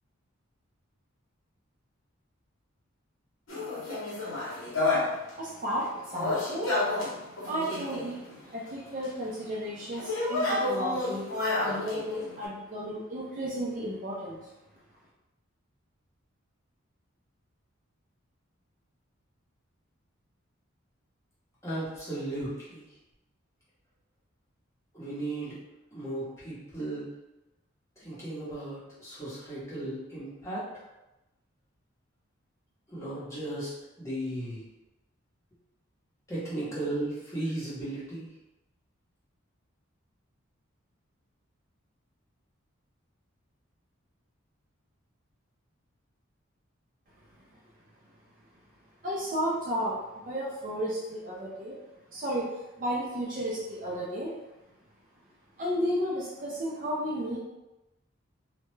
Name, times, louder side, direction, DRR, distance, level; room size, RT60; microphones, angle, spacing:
sound 1, 3.5-5.3 5.8-8.5 9.0-9.1 9.8-12.5, left 2 dB, 65° left, 0.8 m, -30 dB
voice 1, 5.4-6.7 7.4-8.2 8.5-11.2 11.6-14.5 49.0-51.8 52.1-54.4 55.6-57.4, equal, 40° right, -4 dB, 0.4 m, -33 dB
voice 2, 21.6-22.8 24.9-25.6 25.9-27.1 28.0-30.6 32.9-33.7 34.0-34.6 36.3-38.3, right 1 dB, 15° left, -9 dB, 0.8 m, -35 dB
2.2 x 2.0 x 3.0 m, 0.96 s
head